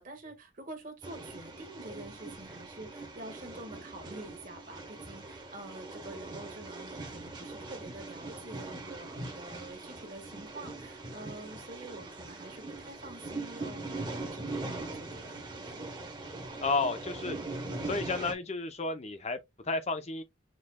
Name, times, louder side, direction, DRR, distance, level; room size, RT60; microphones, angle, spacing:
voice 1, 0.0-15.7, right 2 dB, 40° right, 1.5 m, -47 dB
sound 1, 1.0-18.3, right 2 dB, 20° right, 1.2 m, -41 dB
voice 2, 16.6-17.4 17.8-20.2, left 3 dB, 30° left, 0.6 m, -32 dB
6.3 x 3.2 x 2.2 m
head